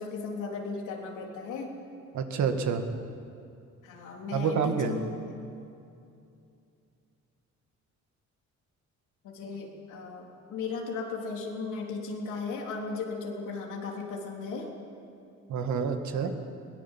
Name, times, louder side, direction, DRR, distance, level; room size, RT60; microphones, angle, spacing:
voice 1, 0.0-1.7 3.8-5.1 9.2-10.2 10.5-14.7 16.1-16.3, left 4 dB, 90° left, -1 dB, 3.7 m, -36 dB
voice 2, 2.1-2.9 4.3-5.0 15.5-16.3, right 6 dB, 70° right, 6 dB, 2.0 m, -28 dB
21.5 x 18.0 x 7.5 m, 2.6 s
cardioid pair, 90°, 30 cm